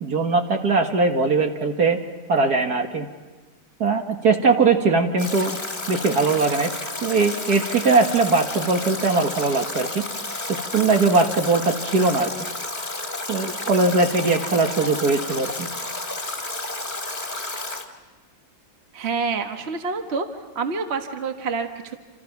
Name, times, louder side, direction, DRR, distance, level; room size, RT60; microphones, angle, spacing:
voice 1, 0.0-2.0 2.3-3.1 3.8-5.6 5.9-6.7 7.0-10.0 10.5-12.3 13.3-15.7, right 3 dB, 55° right, 4 dB, 1.9 m, -20 dB
Stream / Drip / Trickle dribble, 5.2-17.8, left 2 dB, 25° left, 2.2 m, -31 dB
voice 2, 18.9-20.3 20.5-21.9, right 4 dB, 35° right, 5 dB, 1.5 m, -27 dB
28.0 x 28.0 x 5.9 m, 1.3 s
omnidirectional pair, 2.1 m